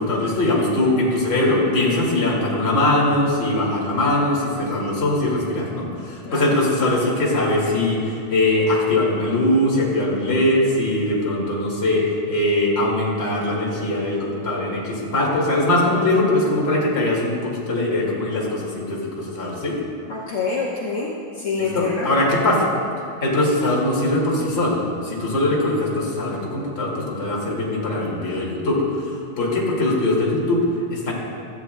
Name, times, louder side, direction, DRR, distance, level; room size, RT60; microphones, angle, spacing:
voice 1, 0.0-19.8 21.6-22.7 23.2-31.1, left 1 dB, 25° left, -4 dB, 1.6 m, -21 dB
voice 2, 6.2-6.6 20.1-22.1, left 4 dB, 75° left, -5 dB, 1.2 m, -26 dB
17.0 x 13.0 x 2.2 m, 2.4 s
omnidirectional pair, 4.2 m